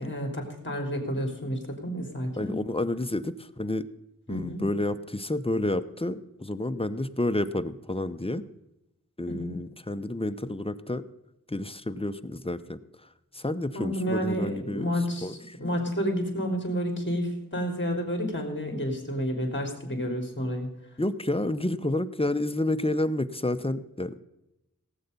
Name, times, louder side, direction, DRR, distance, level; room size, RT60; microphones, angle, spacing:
voice 1, 0.0-2.6 4.3-4.7 9.3-9.6 13.7-20.7, equal, 35° left, 3 dB, 3.6 m, -30 dB
voice 2, 2.4-3.9 4.3-8.4 9.2-11.0 11.5-12.8 13.3-14.9 15.2-15.6 21.0-24.2, left 1 dB, 15° left, 11 dB, 0.8 m, -30 dB
17.5 x 8.0 x 5.3 m, 0.92 s
wide cardioid pair, 55°, 32 cm